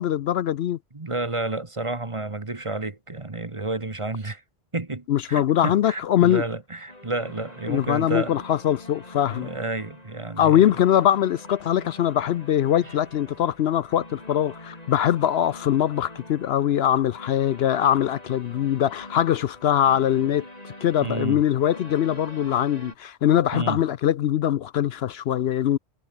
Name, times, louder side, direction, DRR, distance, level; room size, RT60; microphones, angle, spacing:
voice 1, 0.0-0.8 5.1-6.4 7.7-9.5 10.4-20.5 20.8-25.8, left 10 dB, 70° left, 0.8 m, -22 dB
voice 2, 0.9-4.4 4.7-8.4 9.3-10.6 12.9-13.0 21.0-21.4 23.5-23.8, right 2 dB, 30° right, 1.4 m, -30 dB
sound 1, 6.9-23.0, left 1 dB, 35° left, 5.4 m, -44 dB
omnidirectional pair, 1.2 m